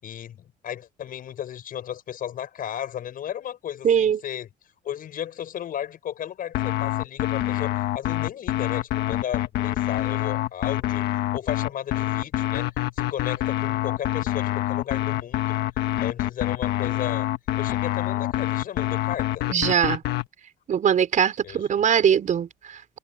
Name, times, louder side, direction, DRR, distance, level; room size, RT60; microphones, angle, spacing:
voice 1, 0.0-4.5 4.8-11.1 11.3-12.7 12.9-15.5 16.0-17.3 17.6-19.5 21.4-21.6, left 10 dB, 55° left, 6.3 m, -34 dB
voice 2, 3.8-4.2 19.5-20.0 20.7-23.0, right 8 dB, 50° right, 4.9 m, -21 dB
sound 1, 6.5-20.3, left 15 dB, 75° left, 1.6 m, -26 dB
cardioid pair, 110°, 17 cm